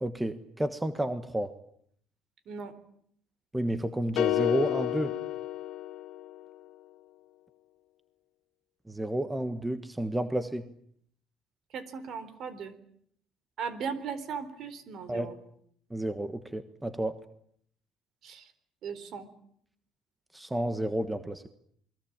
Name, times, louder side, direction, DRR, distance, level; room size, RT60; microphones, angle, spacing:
voice 1, 0.0-1.5 3.5-5.1 8.9-10.6 15.1-15.3 15.9-17.1 20.3-21.5, right 1 dB, 10° right, 10 dB, 1.4 m, -31 dB
sound 1, 4.2-6.5, left 14 dB, 60° left, 1.7 m, -30 dB
voice 2, 11.7-12.7 13.6-15.4 18.2-18.5 18.8-19.3, right 6 dB, 50° right, 14 dB, 4.0 m, -37 dB
28.0 x 21.5 x 8.8 m, 0.67 s
cardioid pair, 135°, 0 cm